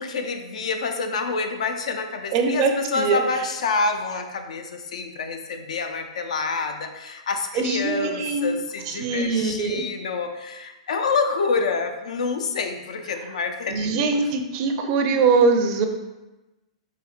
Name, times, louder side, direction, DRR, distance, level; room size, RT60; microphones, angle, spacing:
voice 1, 0.0-14.2, left 4 dB, 80° left, 6 dB, 0.4 m, -27 dB
voice 2, 2.3-3.2 7.6-8.5 8.9-9.8 13.7-15.8, right 4 dB, 40° right, 4 dB, 0.4 m, -22 dB
4.1 x 2.5 x 2.4 m, 1.0 s
hypercardioid pair, 140°, 4 cm